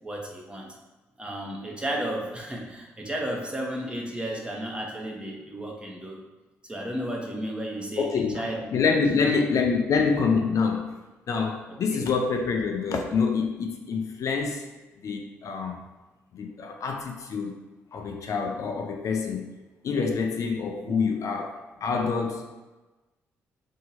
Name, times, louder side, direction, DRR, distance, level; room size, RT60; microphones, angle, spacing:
voice 1, 0.0-0.7 1.2-6.2 6.6-8.6 9.2-9.3 11.7-12.1 20.8-21.0, right 1 dB, 15° right, -1 dB, 0.9 m, -33 dB
voice 2, 8.0-10.9 11.3-14.6 15.0-15.8 16.3-17.6 17.9-19.5 19.8-22.4, left 5 dB, 60° left, 2 dB, 0.4 m, -26 dB
2.8 x 2.7 x 4.1 m, 1.1 s
hypercardioid pair, 45°, 6 cm